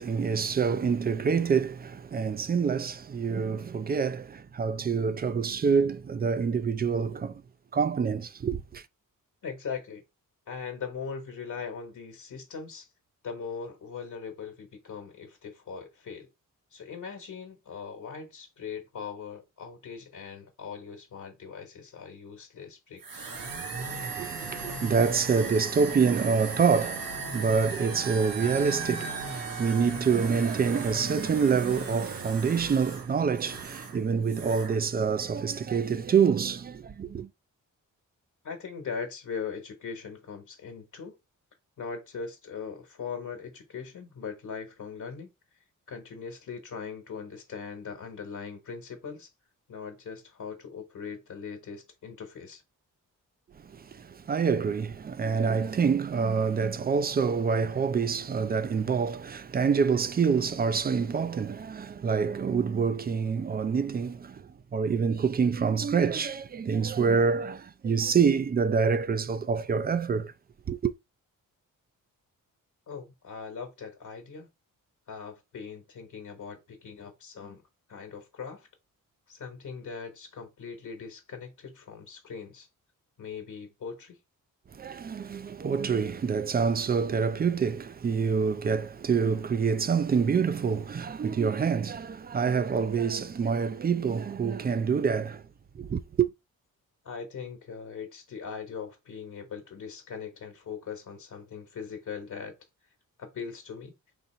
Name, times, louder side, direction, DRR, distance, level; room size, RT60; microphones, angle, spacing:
voice 1, 0.0-7.4 7.7-8.8 23.7-37.3 53.6-70.3 70.7-70.9 84.7-95.4 95.7-96.3, right 6 dB, 30° right, 0.4 m, -26 dB
voice 2, 9.4-10.0 10.5-12.9 13.2-16.3 16.7-23.3 38.4-41.2 41.8-45.3 45.9-49.3 49.7-52.6 72.9-74.5 75.1-77.6 77.9-78.7 79.3-82.7 83.2-84.2 97.0-102.6 103.2-103.9, left 6 dB, 65° left, 1.3 m, -40 dB
sound 1, 23.0-34.0 34.2-34.8, right 4 dB, 85° right, 1.4 m, -37 dB
4.0 x 2.9 x 4.2 m
wide cardioid pair, 130°, 33 cm